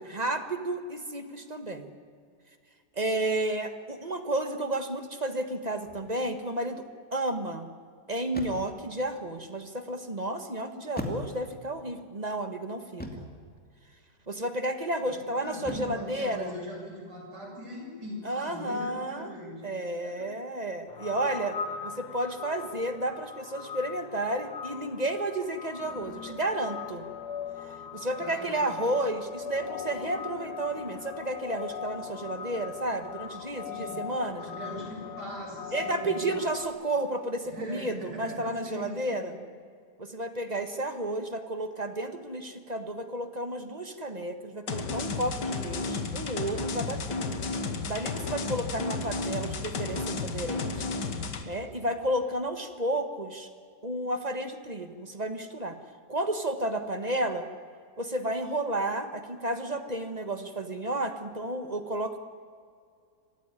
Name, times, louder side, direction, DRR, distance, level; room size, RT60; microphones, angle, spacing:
voice 1, 0.1-1.9 2.9-6.8 7.1-7.7 8.1-13.3 14.3-16.5 18.2-19.3 19.6-27.0 27.9-34.4 35.7-39.3 40.0-47.3 47.9-50.8 51.4-53.5 53.8-55.8 56.1-57.5 58.0-62.2, right 1 dB, 25° right, 8 dB, 1.4 m, -32 dB
sound 1, 5.9-6.2 8.3-8.9 11.0-11.7 13.0-13.4 15.6-16.1, left 1 dB, 5° left, 2.5 m, -38 dB
voice 2, 15.4-19.6 20.0-20.3 28.2-28.9 33.7-34.0 34.4-36.4 37.4-39.3, equal, 80° right, -2 dB, 8.0 m, -41 dB
sound 2, 20.9-36.6, left 7 dB, 75° left, 2.1 m, -40 dB
sound 3, 44.7-51.4, left 4 dB, 90° left, 2.2 m, -32 dB
26.5 x 15.5 x 9.8 m, 2.2 s
omnidirectional pair, 1.8 m